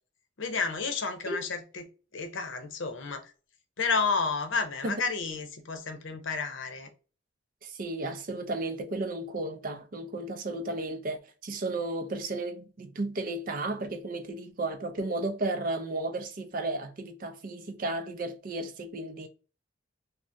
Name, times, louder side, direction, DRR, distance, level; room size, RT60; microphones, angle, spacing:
voice 1, 0.4-3.3 3.8-6.9, left 4 dB, 70° left, 0.7 m, -31 dB
voice 2, 7.6-19.3, right 2 dB, 45° right, 0.4 m, -34 dB
3.4 x 2.1 x 2.6 m
head